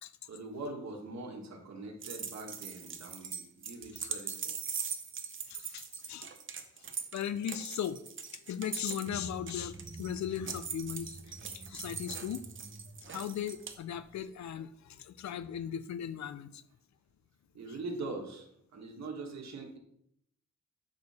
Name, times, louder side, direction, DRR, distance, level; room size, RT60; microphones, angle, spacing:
voice 1, 0.3-4.5 17.5-19.8, right 3 dB, 65° right, 1 dB, 1.4 m, -42 dB
sound 1, 2.0-13.7, right 6 dB, 45° right, 0.6 m, -41 dB
voice 2, 5.5-6.3 7.1-8.0 8.5-12.4 13.1-16.6, left 9 dB, 70° left, 13 dB, 0.4 m, -38 dB
sound 2, 9.1-14.6, right 1 dB, 5° right, 0.8 m, -50 dB
6.5 x 4.8 x 4.1 m, 0.71 s
wide cardioid pair, 120°, 29 cm